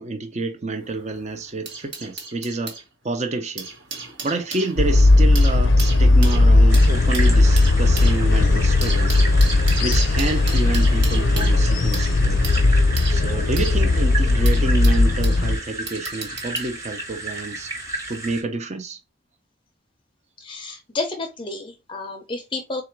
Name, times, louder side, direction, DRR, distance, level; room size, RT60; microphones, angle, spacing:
voice 1, 0.0-3.7 4.2-9.2 9.8-12.4 13.1-17.7 18.1-19.0, right 2 dB, 35° right, 0.5 m, -28 dB
sound 1, 0.7-2.8 3.4-15.4 15.9-16.7 17.6-17.8, right 4 dB, 65° right, 1.4 m, -35 dB
sound 2, 4.8-15.6, left 2 dB, 70° left, 0.5 m, -17 dB
sound 3, 6.7-18.4, right 2 dB, 15° right, 1.0 m, -34 dB
voice 2, 9.8-10.1 20.4-22.8, left 3 dB, 25° left, 0.5 m, -31 dB
3.8 x 2.5 x 4.4 m
head